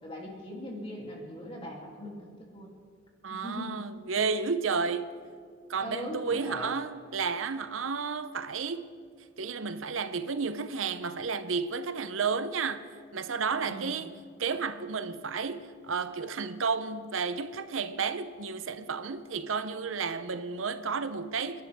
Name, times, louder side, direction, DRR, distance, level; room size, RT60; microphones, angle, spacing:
voice 1, 0.0-2.7 3.3-3.9 5.8-6.8 13.6-14.0, left 1 dB, 30° left, 3.0 m, -40 dB
voice 2, 3.2-5.1 5.7-8.9 9.4-12.9 13.1-21.6, right 5 dB, 85° right, 0.7 m, -32 dB
29.5 x 11.5 x 3.6 m
head